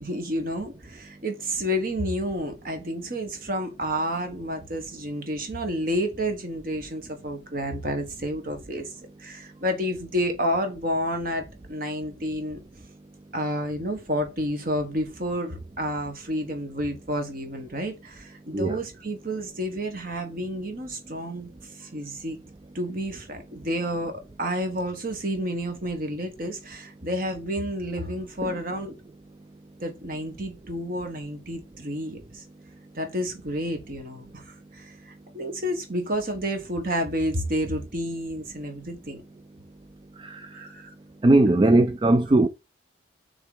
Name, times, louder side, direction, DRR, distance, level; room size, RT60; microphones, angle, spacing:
voice 1, 0.0-12.6 13.3-21.5 21.8-22.4 22.7-24.1 24.4-29.0 29.8-32.4 33.0-39.2 40.5-40.9, equal, 45° right, 1.6 m, -30 dB
voice 2, 41.2-42.5, right 2 dB, 25° right, 0.3 m, -19 dB
6.2 x 3.8 x 5.0 m
head